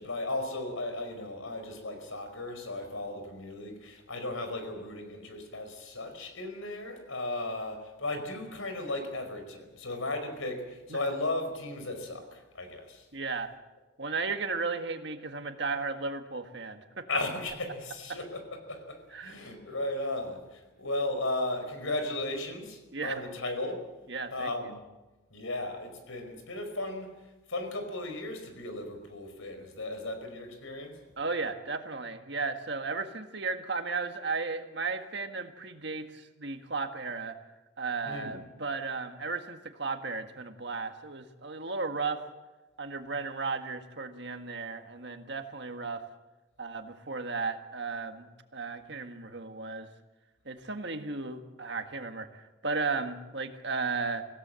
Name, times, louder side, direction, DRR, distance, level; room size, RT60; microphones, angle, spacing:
voice 1, 0.0-13.0 17.1-23.8 24.3-24.8 25.3-27.1 27.5-30.9 38.0-38.4, left 2 dB, 90° left, 7 dB, 5.0 m, -35 dB
voice 2, 13.1-13.5 14.0-17.1 19.1-19.4 22.9-23.2 24.1-24.5 31.2-37.4 37.8-42.2 42.8-46.0 46.6-49.9 50.5-54.3, right 4 dB, 55° right, 6 dB, 1.7 m, -35 dB
26.0 x 17.0 x 7.7 m, 1.1 s
head